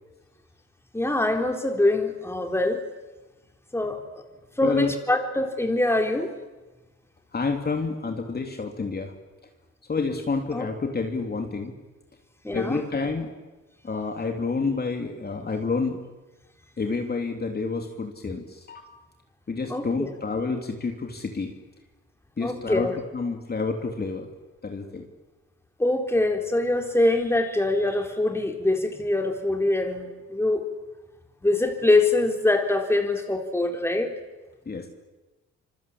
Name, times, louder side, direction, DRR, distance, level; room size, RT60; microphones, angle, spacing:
voice 1, 0.9-2.8 3.7-4.2 4.6-6.3 10.5-10.7 12.4-12.8 19.7-20.1 22.4-22.9 25.8-30.6 31.4-34.1, left 2 dB, 10° left, 4 dB, 4.0 m, -24 dB
voice 2, 4.6-4.9 7.3-9.1 9.9-11.7 12.5-13.3 13.8-16.0 16.8-18.9 19.5-21.5 22.4-24.3 24.6-25.0 34.6-34.9, left 4 dB, 30° left, 3 dB, 3.2 m, -29 dB
26.0 x 24.5 x 8.7 m, 1.1 s
cardioid pair, 90°, 30 cm